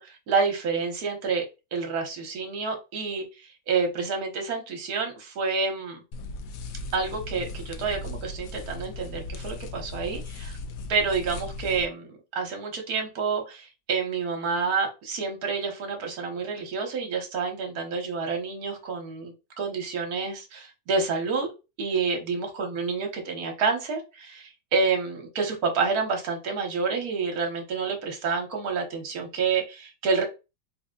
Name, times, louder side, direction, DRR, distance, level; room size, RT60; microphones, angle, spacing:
voice 1, 0.0-1.5 1.7-6.0 6.9-10.6 10.9-21.5 21.8-30.2, right 5 dB, 55° right, 2 dB, 1.3 m, -28 dB
sound 1, 6.1-11.9, left 2 dB, 85° left, 0.7 m, -37 dB
3.9 x 2.2 x 3.6 m, 0.28 s
omnidirectional pair, 2.1 m